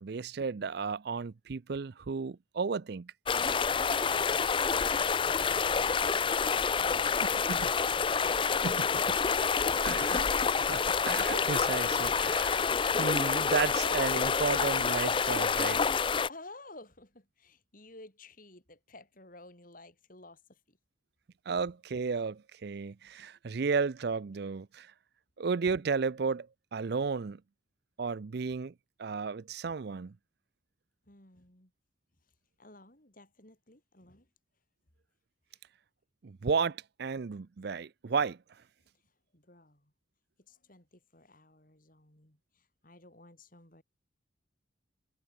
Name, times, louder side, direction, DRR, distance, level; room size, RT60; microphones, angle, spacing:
voice 1, 0.0-3.1 7.5-7.7 8.6-10.2 10.7-12.7 13.0-15.8 21.5-24.9 25.4-27.4 28.0-28.7 29.0-30.1 36.2-38.4, right 5 dB, 55° right, 0.5 m, -33 dB
sound 1, 3.3-16.3, left 5 dB, 25° left, 0.4 m, -28 dB
voice 2, 4.7-10.4 16.3-20.8 31.0-31.7 32.2-32.3 32.6-34.3 35.5-35.6 39.3-39.9 40.4-43.8, left 2 dB, 45° left, 4.8 m, -55 dB
head